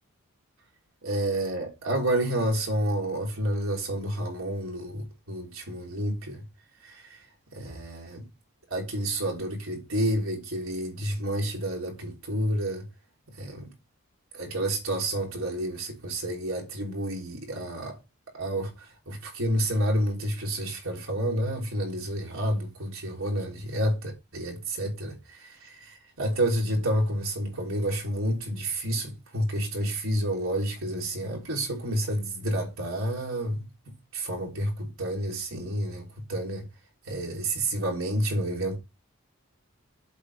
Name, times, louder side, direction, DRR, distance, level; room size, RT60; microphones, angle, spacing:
voice 1, 1.0-6.4 6.8-7.0 7.5-8.2 8.7-12.8 13.4-13.7 14.3-18.0 18.3-33.6 34.1-36.6 37.1-38.8, right 1 dB, 75° right, 3.4 m, -29 dB
8.2 x 3.8 x 6.7 m
head